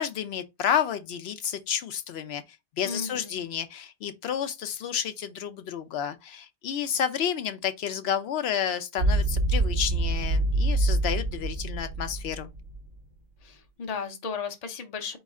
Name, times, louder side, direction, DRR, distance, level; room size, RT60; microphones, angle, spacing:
voice 1, 0.0-2.4 2.8-12.5, left 9 dB, 85° left, 0.8 m, -30 dB
voice 2, 2.8-3.4 13.4-15.2, left 5 dB, 45° left, 0.8 m, -35 dB
sound 1, 9.0-12.9, right 2 dB, 60° right, 0.8 m, -26 dB
4.2 x 3.1 x 3.5 m
omnidirectional pair, 1.0 m